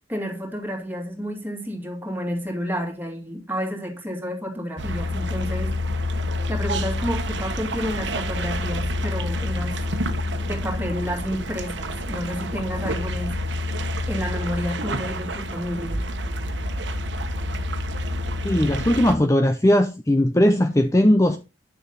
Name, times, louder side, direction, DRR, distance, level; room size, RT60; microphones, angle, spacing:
voice 1, 0.1-5.8 6.5-9.8 10.4-13.3 14.1-16.1, equal, 10° right, 2.7 m, -30 dB
sound 1, 4.8-19.2, left 1 dB, 75° right, 1.2 m, -28 dB
voice 2, 18.4-21.4, left 1 dB, 15° left, 0.7 m, -18 dB
10.5 x 7.1 x 4.0 m
head